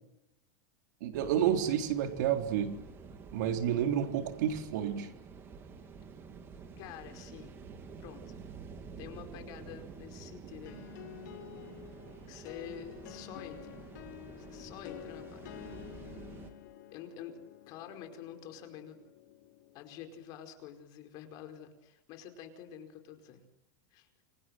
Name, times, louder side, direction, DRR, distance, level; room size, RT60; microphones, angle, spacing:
voice 1, 1.0-2.8 3.3-5.1, right 9 dB, 60° right, 6 dB, 3.9 m, -30 dB
sound 1, 1.1-16.5, right 5 dB, 20° right, 3.3 m, -49 dB
voice 2, 6.8-7.6 8.0-8.4 9.0-10.9 12.3-13.9 14.4-15.7 16.9-17.4 17.7-19.0 19.7-23.5 23.9-24.1, left 9 dB, 35° left, 6 dB, 4.9 m, -48 dB
sound 2, 10.6-20.2, left 12 dB, 65° left, 3.8 m, -50 dB
29.0 x 24.0 x 7.8 m, 0.89 s
supercardioid pair, 170°, 11 cm